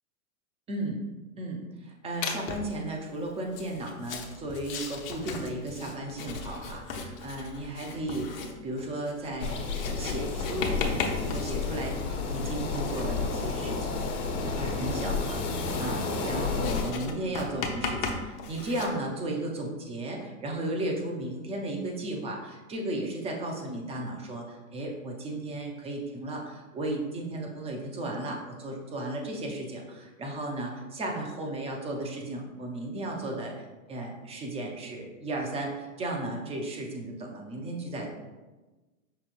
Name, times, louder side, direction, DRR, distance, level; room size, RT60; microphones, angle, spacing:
voice 1, 0.7-1.0 1.4-14.0 14.4-33.5 33.9-38.1, right 1 dB, 15° right, 0 dB, 0.6 m, -35 dB
Writing, 2.2-2.8 3.5-18.9, left 5 dB, 40° left, 0.7 m, -37 dB
sound 1, 9.4-16.8, left 4 dB, 60° left, 1.4 m, -31 dB
5.4 x 3.7 x 2.5 m, 1.2 s
hypercardioid pair, 120°, 43 cm